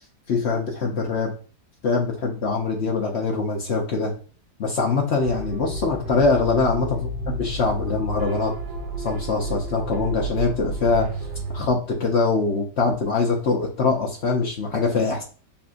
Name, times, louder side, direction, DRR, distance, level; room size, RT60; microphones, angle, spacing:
voice 1, 0.3-1.3 1.8-4.1 4.6-7.0 7.3-8.5 9.0-11.1 11.5-15.2, left 4 dB, 65° left, 0 dB, 0.6 m, -23 dB
sound 1, 5.2-11.7, right 1 dB, 70° right, 1.4 m, -31 dB
6.8 x 2.6 x 2.5 m, 0.38 s
omnidirectional pair, 2.0 m